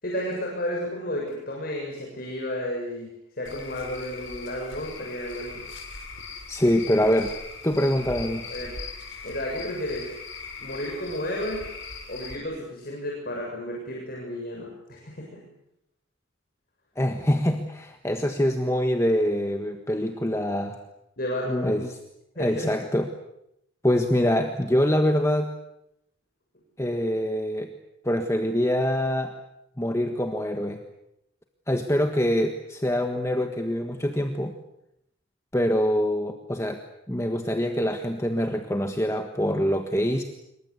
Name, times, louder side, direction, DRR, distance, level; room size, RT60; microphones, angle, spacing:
voice 1, 0.0-3.1 3.4-5.6 8.5-8.8 9.2-10.1 10.6-11.6 12.1-15.4 21.2-21.8 22.4-22.7, left 1 dB, 45° left, -1 dB, 7.1 m, -32 dB
Cricket / Frog, 3.4-12.4, left 4 dB, 70° left, 6.3 m, -40 dB
voice 2, 6.5-7.3 7.6-8.5 17.0-20.8 21.4-22.0 22.4-23.1 23.8-25.5 26.8-27.7 28.0-29.3 29.8-30.8 31.7-34.5 35.5-36.8 37.1-40.2, equal, 15° left, 5 dB, 1.4 m, -24 dB
27.0 x 24.0 x 8.3 m, 0.82 s
head